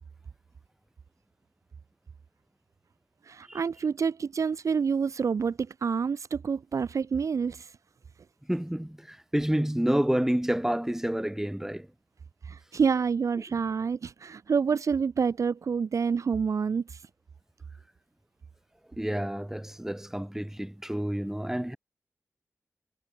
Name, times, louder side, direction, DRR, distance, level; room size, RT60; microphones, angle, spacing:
voice 1, 3.3-7.7 12.5-16.8, right 6 dB, 70° right, 0.5 m, -28 dB
voice 2, 8.5-11.9 19.0-21.8, right 1 dB, 5° right, 1.6 m, -29 dB
cardioid pair, 60°, 6 cm